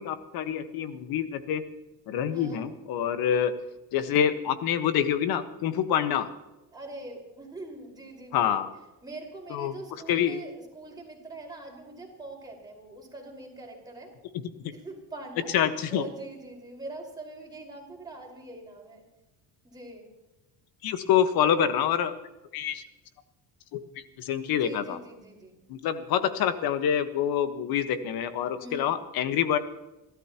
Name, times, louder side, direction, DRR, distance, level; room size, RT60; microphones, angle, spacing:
voice 1, 0.0-1.6 2.1-3.5 3.9-6.3 8.3-8.7 9.5-9.7 10.1-10.4 14.6-14.7 15.5-16.0 20.8-22.1 22.5-22.8 23.7-25.0 25.7-29.6, left 9 dB, 75° left, 10 dB, 1.5 m, -26 dB
voice 2, 2.3-2.6 6.7-8.6 9.0-14.1 14.7-15.5 15.9-19.0 19.6-20.1 24.6-25.6 28.6-29.0, right 2 dB, 10° right, -2 dB, 5.3 m, -43 dB
28.5 x 13.5 x 3.0 m, 1.0 s
cardioid pair, 135°, 36 cm